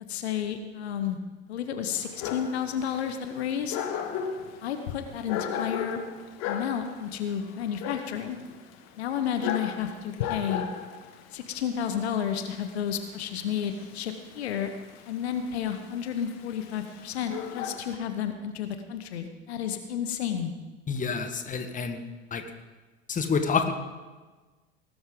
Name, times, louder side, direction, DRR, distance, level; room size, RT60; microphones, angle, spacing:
voice 1, 0.1-1.2 1.5-3.8 4.6-6.0 6.4-8.4 9.0-10.6 11.3-14.7 15.1-20.5, left 8 dB, 70° left, 8 dB, 1.2 m, -31 dB
Dog, 1.9-17.9, left 8 dB, 50° left, 1.6 m, -37 dB
voice 2, 20.9-22.0 22.3-22.4 23.1-23.7, left 5 dB, 25° left, 7 dB, 1.5 m, -28 dB
18.5 x 12.5 x 3.8 m, 1.3 s
figure-of-eight pair, 75°, 33 cm